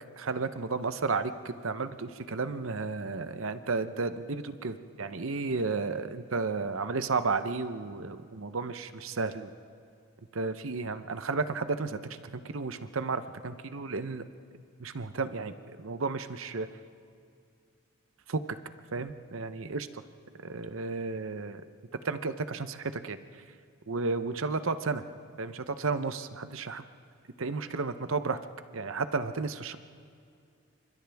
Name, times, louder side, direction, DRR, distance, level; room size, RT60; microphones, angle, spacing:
voice 1, 0.2-9.5 10.3-14.2 14.8-16.7 18.3-18.4 18.9-20.0 20.4-21.6 22.0-23.2 23.9-25.0 25.4-26.8 27.4-28.4 28.7-29.8, right 4 dB, 70° right, 11 dB, 0.8 m, -33 dB
29.5 x 25.5 x 3.5 m, 2.4 s
head